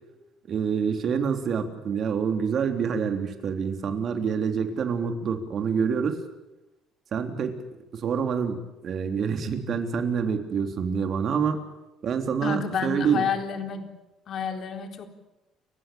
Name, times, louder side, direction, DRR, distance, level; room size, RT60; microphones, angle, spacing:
voice 1, 0.5-6.2 7.1-11.7 12.0-13.3, right 6 dB, 50° right, 6 dB, 3.5 m, -27 dB
voice 2, 12.4-13.9 14.3-15.1, left 6 dB, 50° left, 6 dB, 3.8 m, -30 dB
30.0 x 16.0 x 8.7 m, 1.0 s
cardioid pair, 115°, 0 cm